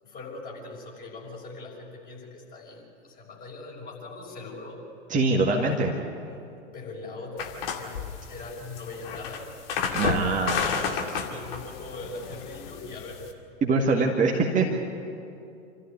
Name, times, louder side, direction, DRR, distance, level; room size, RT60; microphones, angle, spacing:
voice 1, 0.0-4.8 5.5-5.8 6.7-9.5 9.8-13.3, left 3 dB, 25° left, -2 dB, 6.1 m, -41 dB
voice 2, 5.1-5.9 9.9-10.6 13.6-14.7, right 3 dB, 20° right, -2 dB, 1.9 m, -23 dB
sound 1, 7.4-13.3, left 6 dB, 55° left, 2.3 m, -32 dB
27.0 x 14.5 x 9.7 m, 2.6 s
figure-of-eight pair, 95°, 36 cm